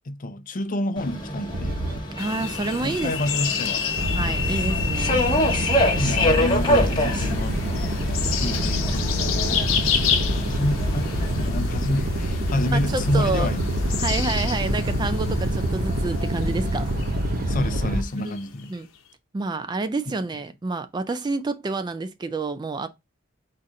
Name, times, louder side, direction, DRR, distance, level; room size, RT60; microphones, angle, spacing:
voice 1, 0.1-1.8 2.8-3.9 4.5-4.7 6.0-7.6 8.4-9.7 9.9-13.7 17.5-18.7, left 1 dB, 40° left, 0.5 m, -28 dB
Subway metro underground, 1.0-11.5, left 2 dB, 25° left, 1.1 m, -26 dB
sound 1, 1.5-2.0 4.0-18.0, equal, 45° right, 0.7 m, -26 dB
sound 2, 2.2-19.0, left 8 dB, 90° left, 0.7 m, -32 dB
voice 2, 2.2-3.1 4.1-5.2 12.7-13.5 14.0-16.9 18.2-18.3 18.7-18.9 19.3-22.9, right 3 dB, 20° right, 0.3 m, -28 dB
4.2 x 2.5 x 4.7 m
head